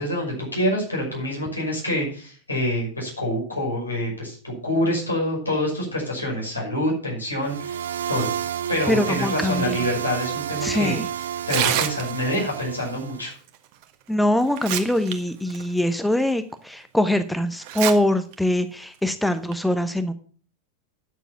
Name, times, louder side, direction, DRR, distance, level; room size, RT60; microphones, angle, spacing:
voice 1, 0.0-8.3 8.7-13.3, left 1 dB, 80° left, -1 dB, 5.7 m, -26 dB
sound 1, 7.4-13.3, right 9 dB, 65° right, 0.6 m, -30 dB
voice 2, 8.9-9.8 10.6-11.1 14.1-20.1, left 1 dB, 5° left, 11 dB, 0.8 m, -23 dB
Tearing, 11.4-12.4 13.8-13.9 14.4-15.1 15.5-15.6 16.3-16.4 17.6-17.9 18.3-18.4 19.3-19.5, right 12 dB, 45° right, 1.4 m, -26 dB
10.0 x 7.0 x 7.1 m, 0.43 s
figure-of-eight pair, 90°, 0 cm